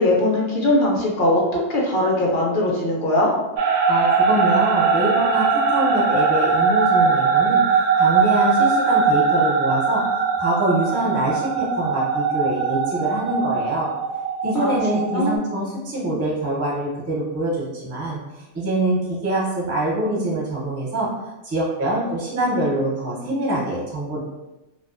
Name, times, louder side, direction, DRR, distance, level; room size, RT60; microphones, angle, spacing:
voice 1, 0.0-3.3 14.6-14.7 15.1-15.3, left 1 dB, 60° left, -2 dB, 0.6 m, -20 dB
sound 1, 3.6-15.4, right 5 dB, 80° right, 0.9 m, -20 dB
voice 2, 3.9-7.6 8.0-10.0 10.4-13.9 14.4-18.2 18.5-21.1 21.4-24.2, right 1 dB, 20° right, -5 dB, 0.4 m, -24 dB
2.3 x 2.3 x 2.4 m, 1.0 s
omnidirectional pair, 1.3 m